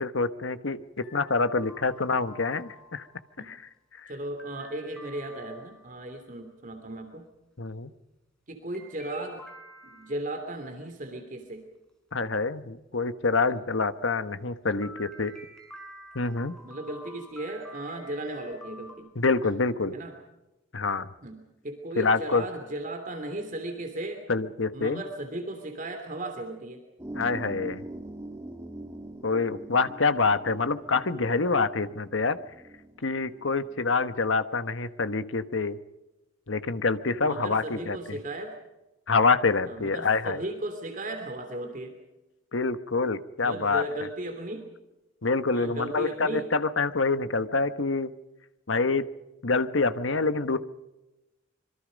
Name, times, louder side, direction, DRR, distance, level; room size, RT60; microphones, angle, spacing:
voice 1, 0.0-3.1 3.4-3.6 4.0-4.1 7.6-7.9 12.1-15.3 16.1-16.5 19.1-19.9 20.7-21.1 22.0-22.4 24.3-25.0 27.1-27.8 29.2-32.4 33.0-35.8 36.5-38.2 39.1-40.4 42.5-43.8 45.2-48.1 48.7-49.1 49.4-50.6, left 4 dB, 75° left, 12 dB, 1.2 m, -26 dB
sound 1, 1.0-3.4 4.4-6.0 8.7-10.4 14.8-18.9, equal, 5° left, 6.4 m, -49 dB
voice 2, 4.1-7.3 8.5-9.4 9.8-11.6 16.6-19.1 19.9-20.1 21.2-24.2 24.7-26.8 37.2-38.6 39.6-41.9 43.4-44.7 45.5-46.5, right 1 dB, 40° right, 5 dB, 3.0 m, -36 dB
sound 2, 27.0-34.0, right 1 dB, 15° right, 1.7 m, -43 dB
26.0 x 23.5 x 5.3 m, 1.0 s
head